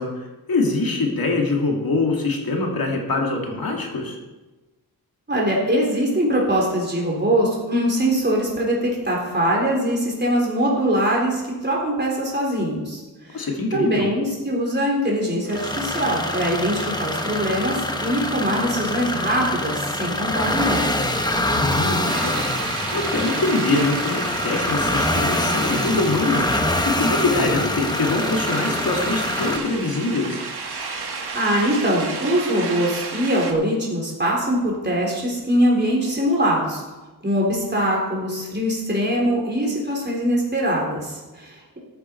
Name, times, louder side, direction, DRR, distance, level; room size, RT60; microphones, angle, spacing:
voice 1, 0.0-4.2 13.3-14.1 21.6-30.4, left 3 dB, 65° left, 0 dB, 2.4 m, -24 dB
voice 2, 5.3-21.0 31.3-36.8 37.2-41.8, equal, 25° right, -3 dB, 3.8 m, -22 dB
sound 1, 15.5-29.6, left 1 dB, 10° left, 1.1 m, -25 dB
sound 2, 22.1-33.5, right 4 dB, 80° right, 1.6 m, -32 dB
14.0 x 8.8 x 4.6 m, 1.1 s
wide cardioid pair, 100°, 38 cm